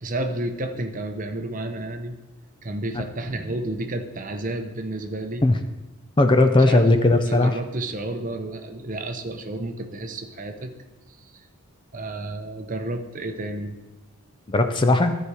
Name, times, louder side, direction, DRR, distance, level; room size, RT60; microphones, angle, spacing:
voice 1, 0.0-2.2 2.6-5.4 6.7-6.9 7.2-10.7 11.9-13.8, right 2 dB, 35° right, 6 dB, 0.7 m, -31 dB
voice 2, 6.2-7.6 14.5-15.1, left 2 dB, 20° left, 7 dB, 0.4 m, -18 dB
14.0 x 4.9 x 4.8 m, 1.1 s
head